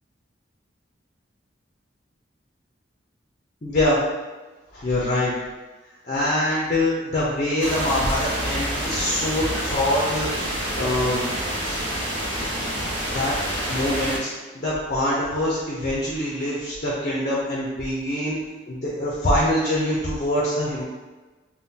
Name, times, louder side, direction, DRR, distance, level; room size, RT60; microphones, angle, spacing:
voice 1, 3.6-4.0 4.7-5.3 6.0-11.3 11.6-11.8 12.8-13.3 13.7-18.4 18.7-20.8, left 1 dB, 40° left, -5 dB, 0.5 m, -24 dB
sound 1, 7.6-14.2, equal, 85° right, 1.0 m, -27 dB
3.6 x 2.2 x 2.7 m, 1.2 s
head